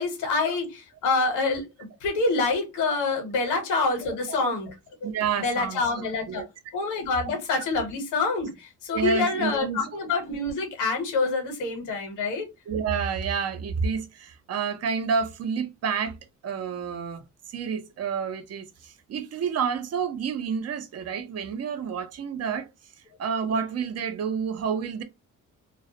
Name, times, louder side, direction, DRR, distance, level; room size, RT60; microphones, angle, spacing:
voice 1, 0.0-4.7 5.0-5.1 5.4-6.4 6.7-12.5, left 3 dB, 90° left, 0.9 m, -26 dB
voice 2, 5.0-6.5 7.2-7.3 8.9-9.9 12.7-16.2 16.4-17.2 17.5-22.7 23.2-25.0, right 6 dB, 55° right, 0.6 m, -29 dB
2.3 x 2.1 x 2.7 m
cardioid pair, 90°, 30 cm